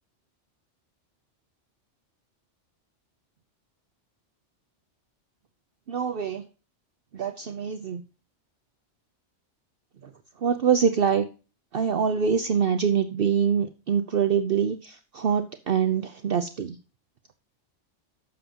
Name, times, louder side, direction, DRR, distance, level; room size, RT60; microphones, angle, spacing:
voice 1, 5.9-6.4 7.1-8.0 10.0-11.2 11.7-16.8, right 7 dB, 55° right, 8 dB, 0.9 m, -25 dB
12.5 x 7.8 x 2.9 m, 0.33 s
omnidirectional pair, 1.2 m